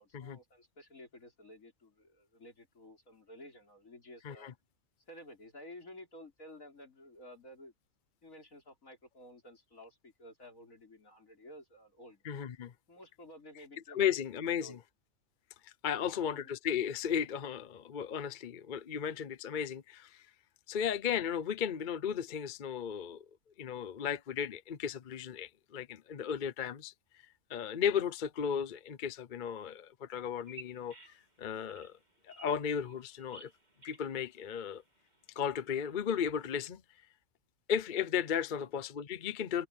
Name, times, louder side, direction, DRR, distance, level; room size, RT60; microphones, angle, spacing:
voice 1, 0.0-4.5 5.1-7.7 8.2-12.2 12.9-14.1 14.4-14.8 15.9-16.5 38.5-38.7, left 1 dB, 75° left, 5.6 m, -53 dB
voice 2, 12.2-12.7 13.9-14.8 15.6-20.3 20.7-23.3 23.6-26.9 27.5-31.9 32.3-33.5 33.8-34.8 35.4-36.8 37.7-39.7, left 8 dB, 45° left, 0.7 m, -35 dB
Bird vocalization bird call bird song, 30.3-36.7, right 3 dB, 30° right, 3.5 m, -58 dB
omnidirectional pair, 1.4 m